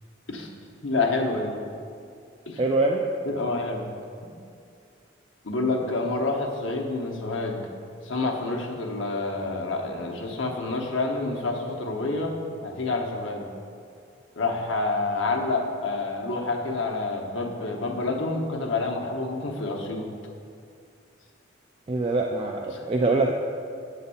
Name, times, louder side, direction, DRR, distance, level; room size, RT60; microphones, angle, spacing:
voice 1, 0.8-1.6 2.5-2.6 3.2-3.8 5.4-7.6 8.0-13.5 14.4-20.1 22.7-22.8, left 3 dB, 85° left, 1 dB, 1.0 m, -28 dB
voice 2, 2.6-3.1 21.9-23.3, right 2 dB, 30° right, 1 dB, 0.3 m, -24 dB
8.7 x 4.0 x 7.0 m, 2.4 s
head